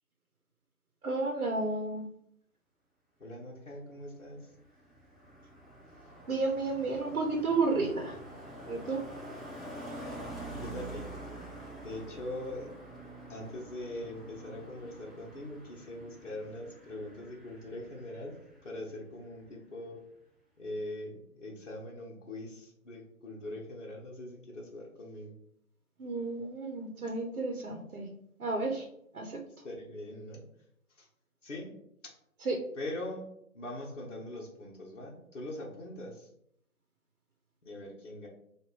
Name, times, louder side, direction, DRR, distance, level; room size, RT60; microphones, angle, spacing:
voice 1, 1.0-2.1 6.3-8.1 8.7-9.0 26.0-28.1 28.4-28.9 29.1-29.4 32.4-32.6, right 3 dB, 70° right, 2 dB, 0.9 m, -32 dB
voice 2, 3.2-4.4 10.5-11.1 11.8-12.7 13.3-18.4 18.6-20.0 20.6-25.3 29.6-30.4 31.0-31.1 31.4-31.7 32.0-32.1 32.8-33.3 33.5-36.3 37.6-38.3, left 1 dB, 55° left, -2 dB, 1.0 m, -42 dB
Car passing by, 4.2-19.0 19.2-19.5, right 1 dB, ahead, 0.4 m, -46 dB
4.3 x 2.6 x 3.0 m, 0.73 s
figure-of-eight pair, 180°, 44 cm